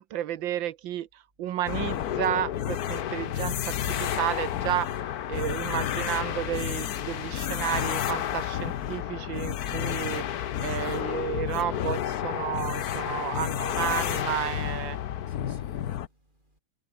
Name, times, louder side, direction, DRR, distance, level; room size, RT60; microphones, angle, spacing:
voice 1, 0.0-15.0, right 12 dB, 70° right, 1.6 m, -32 dB
sound 1, 1.7-16.1, left 11 dB, 60° left, 1.2 m, -31 dB
voice 2, 12.9-13.2 15.3-16.6, right 1 dB, 20° right, 7.7 m, -50 dB
omnidirectional pair, 2.2 m